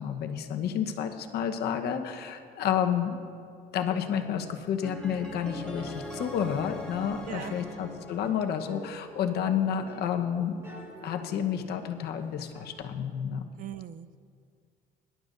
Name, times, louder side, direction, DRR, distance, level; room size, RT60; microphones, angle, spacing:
voice 1, 0.0-3.2 3.7-10.7 11.0-13.5, left 8 dB, 75° left, 5 dB, 1.1 m, -30 dB
sound 1, 4.8-8.9, left 1 dB, 5° left, 2.4 m, -41 dB
sound 2, 5.8-12.7, equal, 15° right, 2.2 m, -51 dB
voice 2, 13.6-14.2, right 10 dB, 55° right, 14 dB, 0.5 m, -40 dB
24.0 x 11.5 x 2.7 m, 2.2 s
cardioid pair, 110°, 17 cm